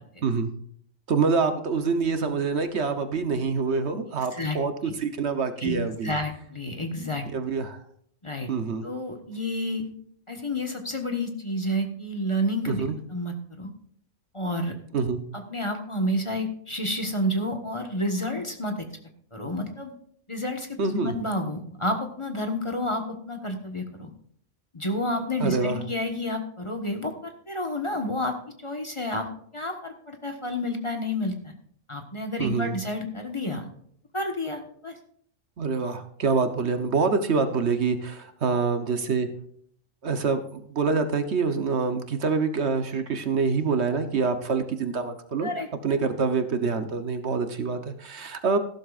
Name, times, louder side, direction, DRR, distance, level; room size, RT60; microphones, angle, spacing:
voice 1, 1.1-6.1 7.3-7.8 8.5-8.8 12.7-13.0 14.9-15.2 20.8-21.1 25.4-25.8 32.4-32.7 35.6-39.3 40.0-45.5 45.8-48.6, right 4 dB, 60° right, 8 dB, 1.2 m, -26 dB
voice 2, 6.0-7.3 8.2-8.5 8.8-9.9 10.3-12.8 13.1-13.7 14.3-14.7 15.3-18.9 19.3-19.9 20.3-24.1 24.7-28.4 28.6-29.3 29.5-31.5 31.9-33.7 34.1-35.0 45.4-45.7, left 1 dB, 25° left, 4 dB, 1.3 m, -30 dB
15.0 x 12.0 x 2.5 m, 0.64 s
omnidirectional pair, 1.3 m